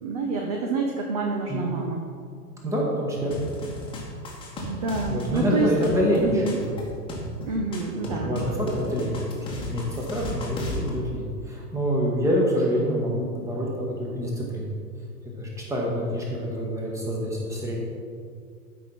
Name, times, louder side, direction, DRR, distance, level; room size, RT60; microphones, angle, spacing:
voice 1, 0.0-2.0 4.6-5.7 6.2-6.6 7.4-8.4, right 3 dB, 25° right, 1 dB, 0.5 m, -28 dB
voice 2, 2.6-3.3 5.1-6.7 7.9-14.7 15.4-17.8, equal, 5° right, -2 dB, 1.3 m, -26 dB
sound 1, 3.3-10.9, left 1 dB, 10° left, 1.3 m, -34 dB
12.0 x 5.4 x 4.4 m, 2.2 s
figure-of-eight pair, 110°, 50 cm